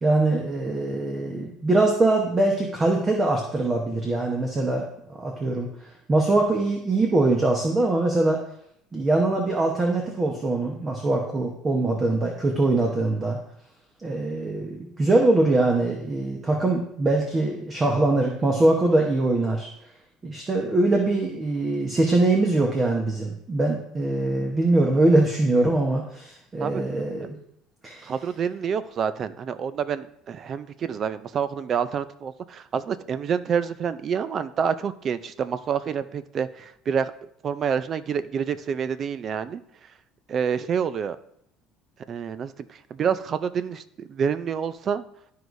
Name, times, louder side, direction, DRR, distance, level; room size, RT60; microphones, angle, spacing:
voice 1, 0.0-4.8 5.1-8.4 8.9-13.4 14.0-19.7 20.2-27.4 27.8-28.1, right 2 dB, 20° right, 1 dB, 1.0 m, -23 dB
voice 2, 28.0-37.1 37.4-39.6 40.3-41.2 42.1-45.0, right 7 dB, 40° right, 14 dB, 0.4 m, -28 dB
12.5 x 4.7 x 2.6 m, 0.71 s
cardioid pair, 130°, 0 cm